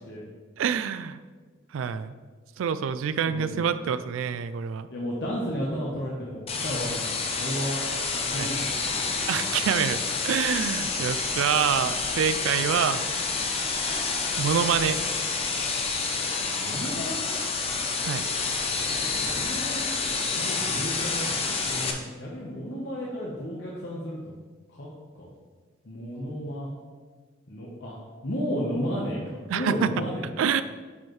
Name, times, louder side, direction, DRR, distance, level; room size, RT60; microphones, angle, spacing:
voice 1, 0.6-1.2 1.7-2.2 2.6-4.9 8.4-8.5 9.3-13.1 14.4-15.0 18.0-18.2 29.5-29.9 30.4-30.6, right 7 dB, 80° right, 13 dB, 0.3 m, -26 dB
voice 2, 4.9-7.8 8.1-8.6 9.5-9.6 16.4-17.2 19.0-24.3 24.7-24.9 25.1-25.3 25.8-26.7 27.5-28.0 28.2-30.2, equal, 60° left, -4 dB, 1.0 m, -33 dB
sound 1, 6.5-21.9, left 4 dB, 30° left, 0.6 m, -28 dB
9.6 x 4.7 x 3.1 m, 1.4 s
head